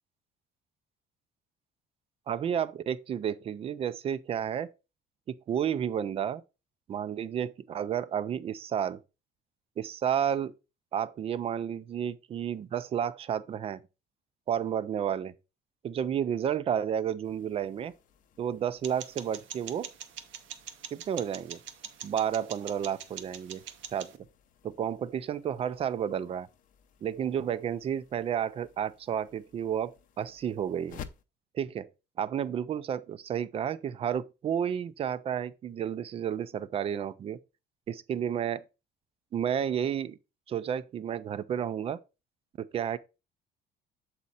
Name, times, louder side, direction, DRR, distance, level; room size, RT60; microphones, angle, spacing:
voice 1, 2.3-4.7 5.3-6.4 6.9-9.0 9.8-10.5 10.9-13.8 14.5-15.3 15.8-17.9 18.4-19.9 20.9-21.6 22.0-23.6 23.9-24.1 24.6-26.5 27.0-31.0 31.5-31.9 32.2-37.4 37.9-38.6 39.3-40.2 40.5-42.0 42.6-43.0, right 9 dB, 30° right, 0.4 m, -31 dB
sound 1, 17.2-31.2, left 8 dB, 45° left, 0.6 m, -55 dB
sound 2, 18.8-24.2, right 9 dB, 80° right, 0.8 m, -44 dB
7.4 x 4.2 x 4.1 m
cardioid pair, 175°, 19 cm